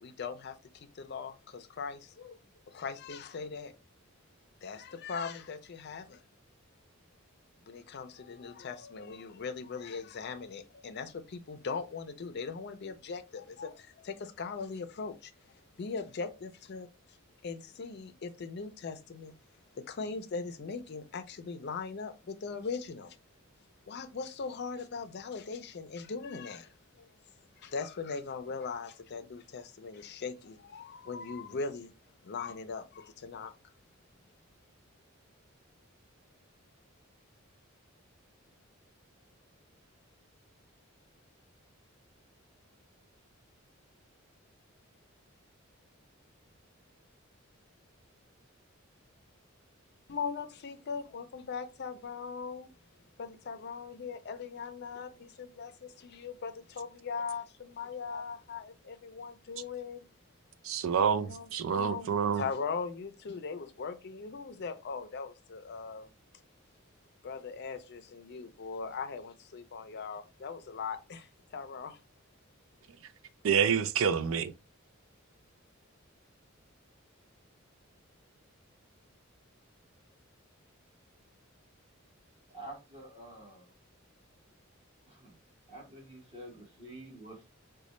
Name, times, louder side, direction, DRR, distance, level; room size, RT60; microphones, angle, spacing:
voice 1, 0.0-2.4 2.7-3.7 4.6-6.2 7.6-15.3 15.8-16.9 17.4-19.3 19.7-23.2 23.9-27.1 27.6-31.9 32.2-33.5 50.1-52.7 53.2-60.0 61.2-66.1 67.2-72.0, left 5 dB, 50° left, 0.4 m, -40 dB
voice 2, 60.6-62.4 73.4-74.5, right 7 dB, 70° right, 0.4 m, -28 dB
voice 3, 82.5-83.7 85.0-85.4 85.7-87.4, right 1 dB, 30° right, 1.4 m, -48 dB
4.0 x 2.2 x 3.1 m
head